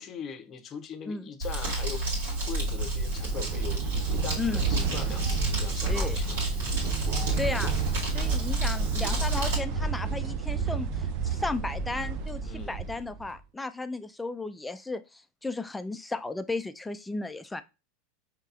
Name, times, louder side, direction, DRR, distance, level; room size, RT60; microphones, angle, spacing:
voice 1, 0.0-2.0 2.4-6.4 12.4-12.8, left 7 dB, 35° left, 0.7 m, -40 dB
Crumpling crinkling, 1.4-9.6, right 2 dB, 75° right, 1.8 m, -30 dB
sound 1, 2.3-13.4, right 5 dB, 50° right, 0.5 m, -31 dB
voice 2, 5.9-6.2 7.4-7.8 8.1-17.6, left 3 dB, 10° left, 0.4 m, -34 dB
5.3 x 2.9 x 2.4 m
hypercardioid pair, 85°, 0 cm